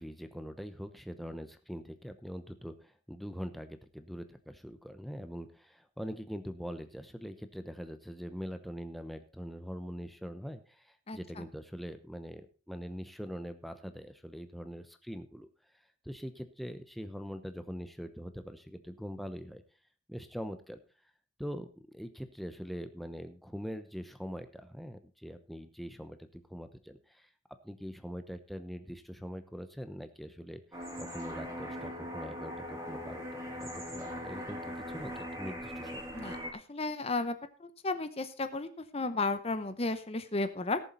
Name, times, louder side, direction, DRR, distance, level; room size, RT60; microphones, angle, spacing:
voice 1, 0.0-15.5 16.0-19.6 20.1-20.8 21.4-27.3 27.6-30.6 31.0-36.1, equal, ahead, 8 dB, 0.8 m, -43 dB
voice 2, 11.1-11.4 36.1-36.4 36.7-37.3 37.6-40.8, left 3 dB, 35° left, 11 dB, 0.8 m, -33 dB
sound 1, 30.7-36.5, equal, 15° right, 3.0 m, -40 dB
17.5 x 7.2 x 4.0 m, 0.35 s
head